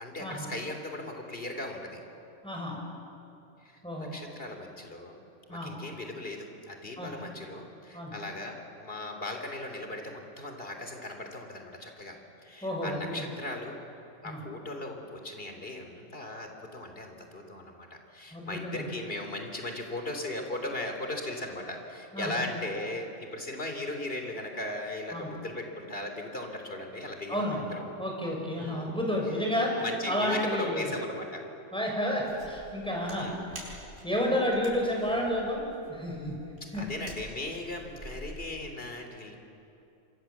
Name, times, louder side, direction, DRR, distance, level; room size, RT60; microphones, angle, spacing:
voice 1, 0.0-2.0 3.6-5.2 5.5-12.2 12.4-13.8 14.2-27.9 28.6-29.0 29.8-31.4 33.0-33.5 36.7-39.4, left 1 dB, 50° left, 4 dB, 3.6 m, -38 dB
voice 2, 2.4-2.8 3.8-4.1 5.5-5.7 7.0-7.1 7.9-8.1 12.6-13.3 14.2-14.4 18.3-18.9 22.1-22.4 25.1-25.3 27.3-27.6 28.0-30.9 31.7-33.3 34.0-35.6 35.9-36.4 36.7-36.9, equal, 5° left, -1 dB, 6.3 m, -31 dB
sound 1, 32.2-38.5, right 1 dB, 75° right, 6.9 m, -48 dB
27.5 x 26.0 x 7.3 m, 2.8 s
omnidirectional pair, 1.3 m